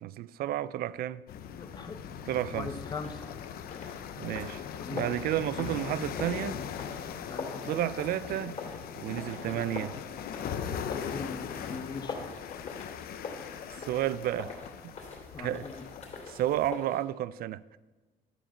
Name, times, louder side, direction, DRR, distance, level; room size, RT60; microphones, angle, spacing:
voice 1, 0.0-1.3 2.3-2.7 4.2-4.6 4.9-6.6 7.6-8.6 9.0-10.0 13.8-14.5 14.8-14.9 15.4-15.7 16.3-17.6, right 12 dB, 65° right, 0.4 m, -31 dB
sound 1, 1.3-16.7, left 8 dB, 65° left, 0.7 m, -40 dB
voice 2, 1.6-2.0 2.6-3.4 4.8-5.1 5.5-5.7 7.3-7.6 10.8-12.2 15.3-15.8, left 4 dB, 25° left, 0.9 m, -40 dB
sound 2, 3.0-17.0, left 4 dB, 40° left, 2.8 m, -44 dB
12.0 x 4.9 x 6.9 m
cardioid pair, 110°, 17 cm